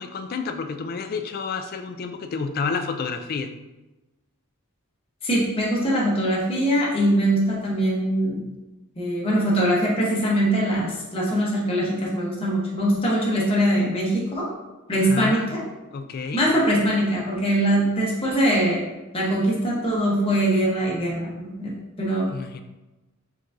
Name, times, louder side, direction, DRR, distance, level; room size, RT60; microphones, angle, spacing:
voice 1, 0.0-3.5 14.9-15.5 15.9-16.4 22.3-22.6, left 5 dB, 45° left, 7 dB, 0.3 m, -30 dB
voice 2, 5.2-8.4 9.0-14.5 14.9-15.6 16.3-18.8 19.1-22.3, right 1 dB, 25° left, -5 dB, 1.0 m, -22 dB
4.6 x 3.7 x 2.6 m, 1.1 s
head